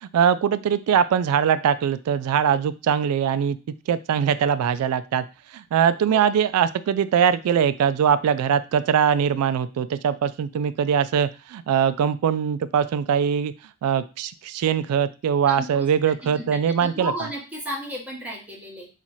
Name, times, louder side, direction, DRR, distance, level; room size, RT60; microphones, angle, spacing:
voice 1, 0.0-3.6 3.9-5.3 5.5-13.5 13.8-17.1, right 8 dB, 85° right, 15 dB, 0.3 m, -22 dB
voice 2, 16.2-18.9, equal, 5° right, -3 dB, 1.0 m, -34 dB
3.0 x 2.4 x 4.0 m, 0.32 s
head